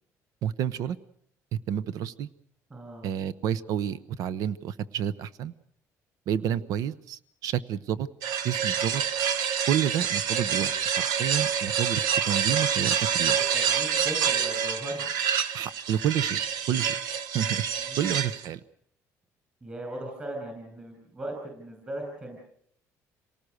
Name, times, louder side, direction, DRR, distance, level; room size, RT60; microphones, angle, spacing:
voice 1, 0.4-1.0 1.7-2.3 3.0-5.5 6.3-8.1 8.4-9.0 9.7-13.4 15.5-16.4 16.7-17.0 17.3-17.6 18.0-18.6, right 9 dB, 70° right, 17 dB, 0.8 m, -29 dB
voice 2, 2.7-3.1 13.5-15.1 17.8-18.1 19.6-22.4, right 1 dB, 20° right, 1 dB, 6.0 m, -38 dB
sound 1, 8.2-18.5, right 8 dB, 85° right, 1.1 m, -27 dB
27.5 x 18.5 x 6.5 m, 0.68 s
cardioid pair, 140°, 6 cm